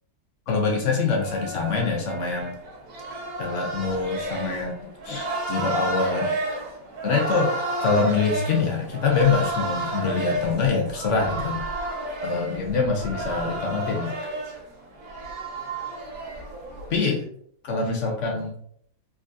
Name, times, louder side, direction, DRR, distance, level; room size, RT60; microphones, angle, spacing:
voice 1, 0.5-2.6 3.4-6.3 7.0-7.5 7.8-11.6 12.2-14.2 16.9-17.3 17.6-18.5, left 4 dB, 65° left, 1 dB, 0.8 m, -25 dB
sound 1, 1.2-17.0, right 2 dB, 65° right, 1.3 m, -31 dB
3.8 x 2.7 x 2.6 m, 0.68 s
omnidirectional pair, 1.9 m